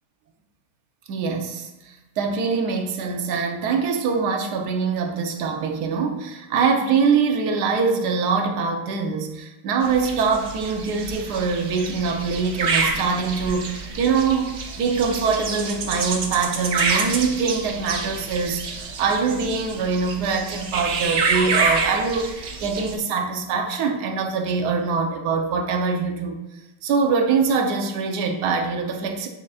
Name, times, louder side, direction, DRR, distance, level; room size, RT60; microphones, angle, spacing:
voice 1, 1.1-22.3 22.6-26.4 26.8-29.3, right 5 dB, 60° right, 3 dB, 1.2 m, -23 dB
sound 1, 9.8-22.9, right 4 dB, 85° right, 0.6 m, -28 dB
7.5 x 6.9 x 2.4 m, 1.0 s
omnidirectional pair, 2.4 m